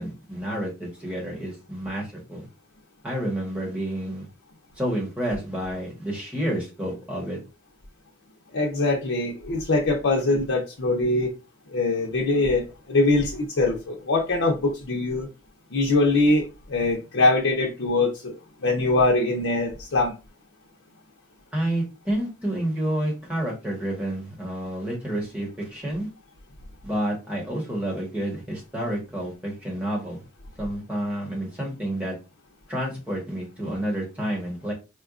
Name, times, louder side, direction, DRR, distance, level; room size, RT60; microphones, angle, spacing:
voice 1, 0.0-2.4 3.0-4.2 4.8-7.4 21.5-26.1 26.8-30.2 30.6-32.2 32.7-34.7, right 1 dB, 5° right, 1.1 m, -29 dB
voice 2, 8.5-11.3 11.7-15.3 15.7-20.1, left 2 dB, 85° left, 0.6 m, -23 dB
4.3 x 2.2 x 2.4 m
head